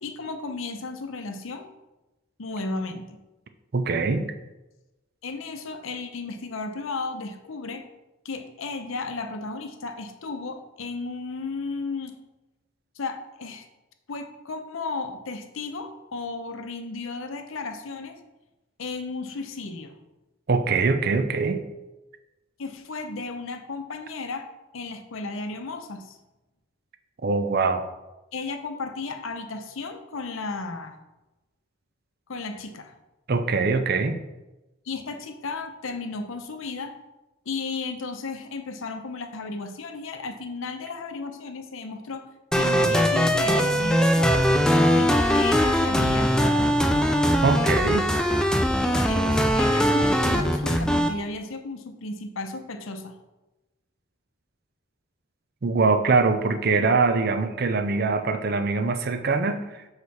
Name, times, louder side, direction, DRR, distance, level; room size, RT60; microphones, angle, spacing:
voice 1, 0.0-1.7 2.4-3.2 5.2-7.9 8.2-12.2 13.0-13.7 14.1-18.2 18.8-19.9 22.6-24.5 24.7-26.2 28.3-31.0 32.3-32.9 34.9-36.9 37.5-42.3 42.5-46.8 48.8-53.2, left 3 dB, 75° left, 7 dB, 0.7 m, -34 dB
voice 2, 3.7-4.3 20.5-21.6 27.2-27.8 33.3-34.2 47.4-48.1 55.6-59.9, right 4 dB, 50° right, 9 dB, 0.5 m, -23 dB
sound 1, 42.5-51.1, equal, 5° left, 0.3 m, -21 dB
6.5 x 4.8 x 4.1 m, 1.0 s
head